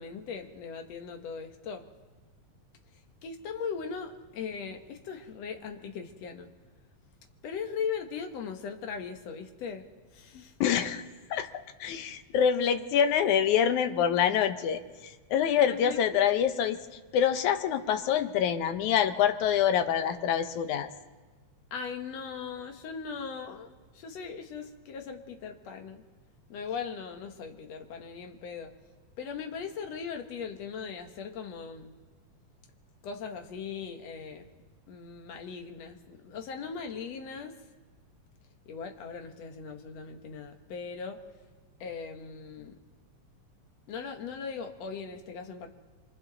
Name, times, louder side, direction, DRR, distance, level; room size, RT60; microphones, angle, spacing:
voice 1, 0.0-1.9 3.2-6.5 7.4-9.8 10.1-10.5 15.6-16.4 21.7-23.7 24.0-26.0 26.5-28.7 29.2-31.9 33.0-34.5 34.9-37.5 38.7-41.2 41.8-42.7 43.9-45.7, left 6 dB, 65° left, 5 dB, 2.4 m, -39 dB
voice 2, 10.6-11.0 11.3-11.5 11.8-16.8 17.1-20.9, left 8 dB, 80° left, 9 dB, 2.4 m, -26 dB
27.5 x 24.5 x 4.0 m, 1.3 s
omnidirectional pair, 3.4 m